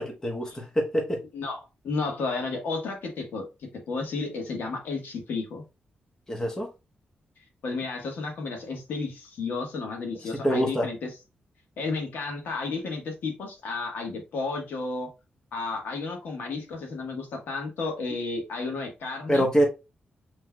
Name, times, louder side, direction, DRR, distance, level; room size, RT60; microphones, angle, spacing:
voice 1, 0.0-1.2 6.3-6.7 10.4-10.9 19.3-19.7, equal, 15° left, 1 dB, 1.1 m, -25 dB
voice 2, 1.8-3.4 3.9-5.6 7.6-11.1 11.8-15.1 15.5-19.4, left 3 dB, 80° left, 2 dB, 1.4 m, -32 dB
5.8 x 3.2 x 2.3 m, 0.27 s
wide cardioid pair, 135°, 3 cm